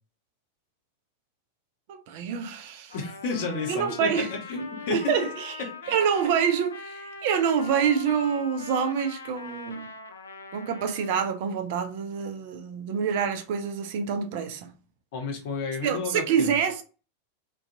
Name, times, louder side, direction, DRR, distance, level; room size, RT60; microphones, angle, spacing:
voice 1, 1.9-2.9 3.7-4.3 4.9-5.6 5.9-9.9 10.5-14.7 15.8-16.8, right 7 dB, 50° right, 0.4 m, -26 dB
Trumpet, 2.9-11.3, left 4 dB, 70° left, 0.3 m, -42 dB
voice 2, 2.9-5.0 5.6-6.0 15.1-16.5, left 4 dB, 50° left, 0.9 m, -32 dB
2.5 x 2.2 x 2.6 m
figure-of-eight pair, 90°, 0 cm